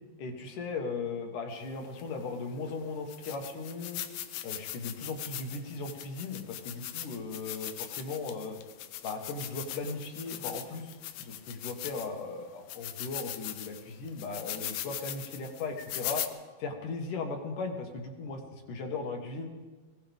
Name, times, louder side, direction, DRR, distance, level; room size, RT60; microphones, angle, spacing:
voice 1, 0.2-4.0 4.4-8.6 9.0-16.2 16.6-18.4 18.7-19.5, left 4 dB, 65° left, 3 dB, 2.8 m, -37 dB
sound 1, 2.0-2.1 2.7-2.8 3.1-12.2 12.7-16.3, left 12 dB, 85° left, 2.6 m, -40 dB
21.5 x 17.0 x 3.6 m, 1.3 s
omnidirectional pair, 4.3 m